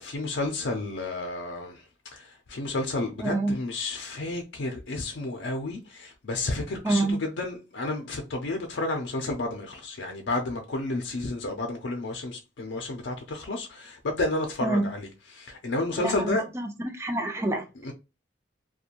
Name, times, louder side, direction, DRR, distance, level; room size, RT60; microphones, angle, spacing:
voice 1, 0.0-1.8 2.1-16.4 17.8-17.9, left 2 dB, 80° left, 0.5 m, -31 dB
voice 2, 3.2-3.6 6.8-7.2 14.6-14.9 16.0-17.7, right 2 dB, 15° right, 0.3 m, -27 dB
2.5 x 2.2 x 2.8 m
head